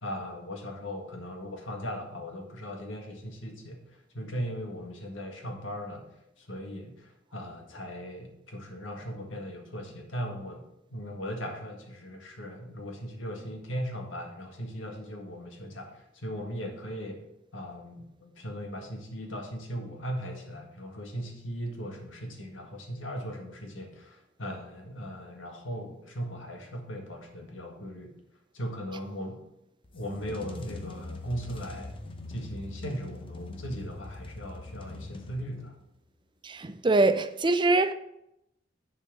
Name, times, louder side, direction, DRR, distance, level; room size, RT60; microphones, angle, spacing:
voice 1, 0.0-6.1 6.4-10.6 10.9-17.2 17.5-28.1 28.5-29.4 29.9-31.9 32.3-35.8, equal, 80° left, 1.8 m, -38 dB
sound 1, 29.8-35.8, left 2 dB, 30° left, 0.8 m, -42 dB
voice 2, 36.4-37.9, right 2 dB, 25° right, 0.5 m, -23 dB
10.5 x 4.5 x 6.1 m
head